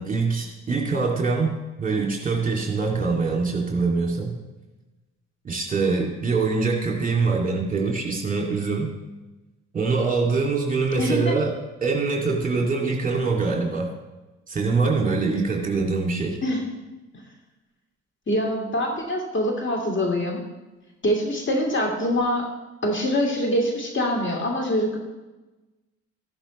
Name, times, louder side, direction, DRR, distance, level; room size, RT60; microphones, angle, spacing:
voice 1, 0.0-4.3 5.4-8.9 9.7-13.9 14.5-16.4, right 4 dB, 20° right, 0 dB, 2.5 m, -24 dB
voice 2, 11.0-11.4 16.4-16.8 18.3-20.4 21.0-22.5 22.8-25.0, equal, 30° left, 1 dB, 2.4 m, -24 dB
14.0 x 11.5 x 3.2 m, 1.1 s
figure-of-eight pair, 50°, 39 cm